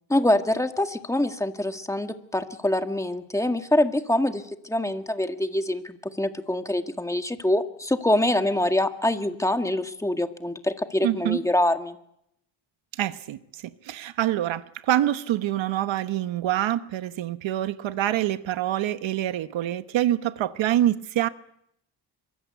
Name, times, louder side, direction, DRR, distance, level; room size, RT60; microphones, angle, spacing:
voice 1, 0.1-12.0, left 1 dB, 5° left, 1.8 m, -25 dB
voice 2, 11.0-11.4 13.0-13.4 13.9-21.3, right 13 dB, 85° right, 1.2 m, -25 dB
25.5 x 23.5 x 8.1 m
cardioid pair, 115°, 45 cm